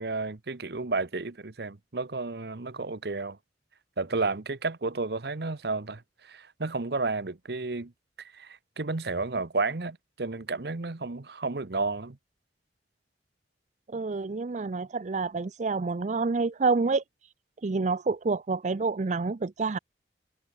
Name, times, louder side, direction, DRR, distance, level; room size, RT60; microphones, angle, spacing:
voice 1, 0.0-3.4 4.0-7.9 8.3-12.2, right 3 dB, 60° right, 1.0 m, -32 dB
voice 2, 13.9-17.0 17.6-19.8, right 4 dB, 40° right, 0.5 m, -28 dB
head